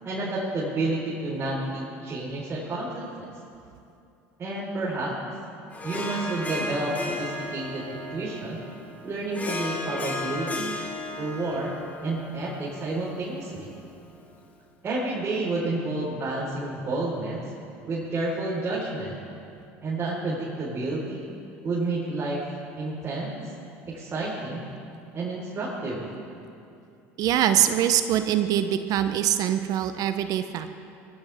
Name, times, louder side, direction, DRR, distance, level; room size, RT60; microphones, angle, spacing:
voice 1, 0.0-3.3 4.4-5.2 5.8-8.6 9.0-10.8 11.2-11.7 12.0-13.7 14.8-17.5 17.9-19.2 19.8-21.3 21.6-22.4 22.8-23.5 23.9-24.7 25.1-26.1, right 2 dB, 35° right, -7 dB, 4.3 m, -30 dB
Harp, 5.7-14.4, left 2 dB, 20° left, 2.4 m, -35 dB
voice 2, 27.2-30.7, right 11 dB, 55° right, 9 dB, 0.8 m, -23 dB
20.5 x 15.5 x 3.6 m, 2.6 s
hypercardioid pair, 80°, 7 cm